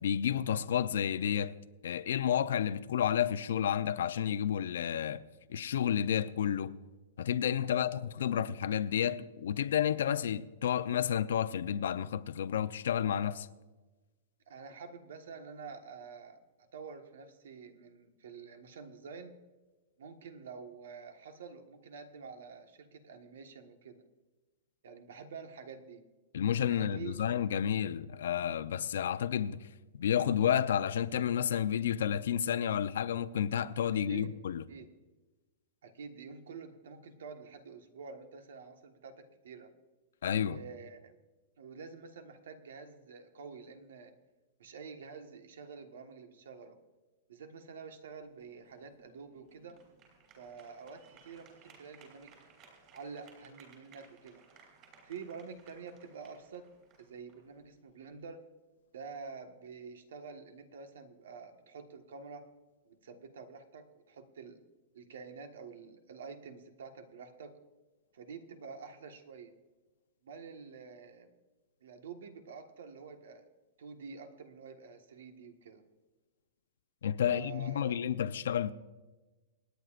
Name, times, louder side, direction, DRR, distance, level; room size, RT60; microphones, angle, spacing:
voice 1, 0.0-1.5 1.8-5.2 5.5-6.7 7.2-13.5 26.3-29.6 29.9-34.6 40.2-40.6 77.0-78.7, left 9 dB, 80° left, 0.6 m, -31 dB
voice 2, 14.5-19.3 20.0-24.0 24.8-26.0 26.7-27.2 34.0-34.3 34.7-34.9 35.8-39.7 40.5-41.2 41.6-44.1 44.6-46.8 47.3-49.8 50.4-52.4 52.9-54.4 55.0-56.7 57.0-58.4 58.9-62.5 62.8-64.6 64.9-67.6 68.1-69.5 70.2-71.3 71.8-73.4 73.8-75.8 77.2-78.0, right 5 dB, 90° right, 1.4 m, -48 dB
sound 1, 48.1-58.2, right 5 dB, 30° right, 3.3 m, -61 dB
27.5 x 9.3 x 2.5 m
supercardioid pair, 175°, 0 cm